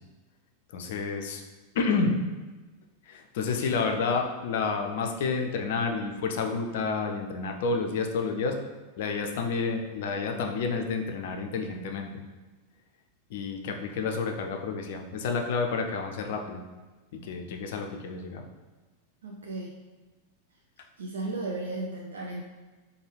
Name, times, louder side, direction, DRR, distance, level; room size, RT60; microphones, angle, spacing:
voice 1, 0.7-1.4 1.7-2.1 3.1-8.5 9.0-12.2 13.3-16.6 17.2-18.4, left 4 dB, 55° left, 4 dB, 0.4 m, -30 dB
voice 2, 19.2-19.8 21.0-22.4, right 2 dB, 70° right, -1 dB, 0.3 m, -35 dB
4.4 x 2.3 x 3.2 m, 1.2 s
figure-of-eight pair, 90°, 0 cm